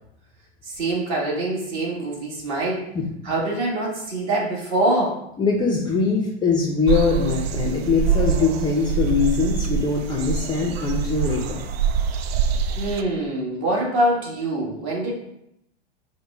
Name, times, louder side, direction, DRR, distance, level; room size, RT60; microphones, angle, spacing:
voice 1, 0.6-2.9 3.2-5.2 12.8-15.1, right 1 dB, 45° right, -2 dB, 1.5 m, -24 dB
voice 2, 5.4-11.6, left 4 dB, 15° left, -2 dB, 0.5 m, -22 dB
sound 1, 6.9-13.0, right 7 dB, 70° right, 0.4 m, -24 dB
4.6 x 2.1 x 3.4 m, 0.78 s
hypercardioid pair, 115°, 32 cm